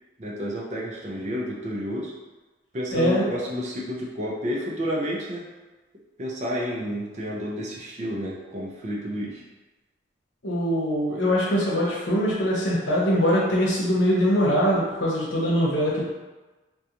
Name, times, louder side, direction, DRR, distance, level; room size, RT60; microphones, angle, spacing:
voice 1, 0.2-2.1 2.7-5.5 6.2-9.4, equal, 35° right, -3 dB, 0.4 m, -30 dB
voice 2, 2.9-3.3 10.4-16.1, equal, 85° left, -5 dB, 0.8 m, -22 dB
2.4 x 2.2 x 2.8 m, 1.2 s
head